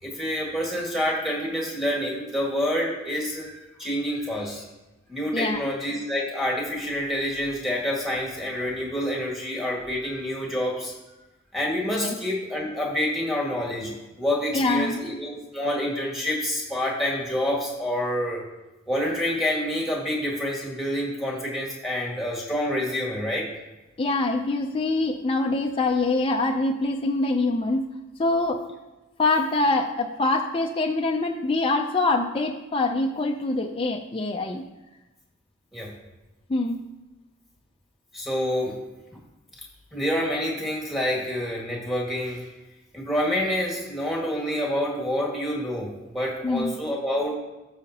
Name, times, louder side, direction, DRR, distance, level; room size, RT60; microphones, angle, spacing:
voice 1, 0.0-4.6 5.1-10.9 11.5-18.4 18.9-23.5 35.7-35.9 38.1-38.8 39.9-42.4 42.9-47.4, equal, ahead, -3 dB, 1.8 m, -27 dB
voice 2, 14.5-15.0 24.0-27.9 28.2-28.6 29.2-34.6 36.5-36.8 46.4-46.8, left 2 dB, 25° left, 2 dB, 0.4 m, -24 dB
14.0 x 4.9 x 2.8 m, 1.0 s
head